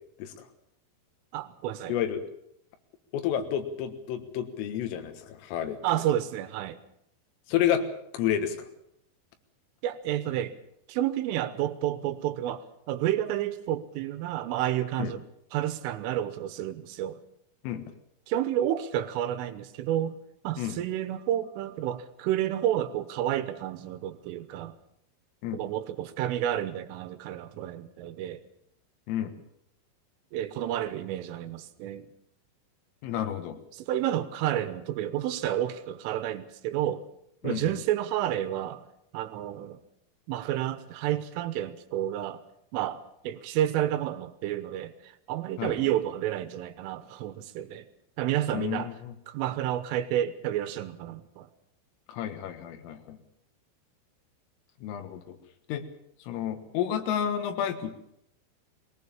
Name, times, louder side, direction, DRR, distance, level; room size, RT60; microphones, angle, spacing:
voice 1, 1.3-2.0 5.8-6.8 9.8-10.6 10.9-15.2 15.5-17.2 18.3-20.2 20.5-24.8 25.5-28.4 30.3-32.1 33.7-37.1 37.4-38.9 39.1-39.8 40.3-42.4 42.7-47.9 48.2-48.9 49.3-51.5, right 12 dB, 80° right, 12 dB, 3.5 m, -30 dB
voice 2, 1.9-2.2 3.1-5.8 7.5-7.9 8.1-8.6 15.0-15.1 17.6-17.9 20.6-20.8 25.4-25.6 29.1-29.4 33.0-33.6 37.4-37.7 45.6-45.9 48.5-49.1 52.1-53.2 54.8-55.4 55.7-55.8 56.3-58.1, left 10 dB, 90° left, 7 dB, 4.2 m, -30 dB
20.5 x 18.5 x 7.2 m, 0.76 s
omnidirectional pair, 5.7 m